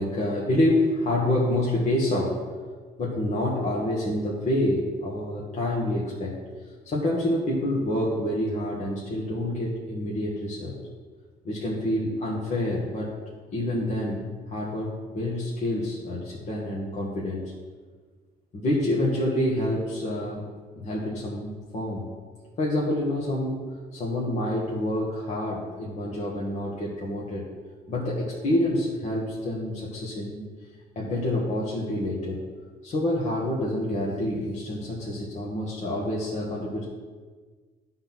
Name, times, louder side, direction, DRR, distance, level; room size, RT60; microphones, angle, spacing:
voice 1, 0.0-2.5 3.0-6.4 6.8-10.8 11.4-13.1 13.5-17.5 18.5-20.4 20.8-22.1 22.6-23.6 23.9-27.4 27.9-30.4 31.0-32.4 32.8-36.8, left 1 dB, 45° left, -5 dB, 1.9 m, -27 dB
11.5 x 4.0 x 6.0 m, 1.5 s
cardioid pair, 110°, 17 cm